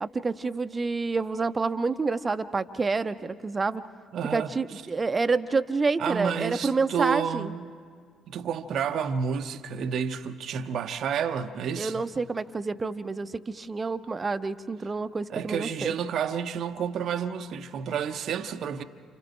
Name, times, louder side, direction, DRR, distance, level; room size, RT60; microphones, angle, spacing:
voice 1, 0.0-3.8 4.3-7.5 11.8-15.9, right 4 dB, 30° right, 0.8 m, -28 dB
voice 2, 4.1-4.5 6.0-7.7 8.3-12.0 15.3-18.8, right 7 dB, 55° right, 0.9 m, -30 dB
29.5 x 28.5 x 3.4 m
figure-of-eight pair, 45°, 0 cm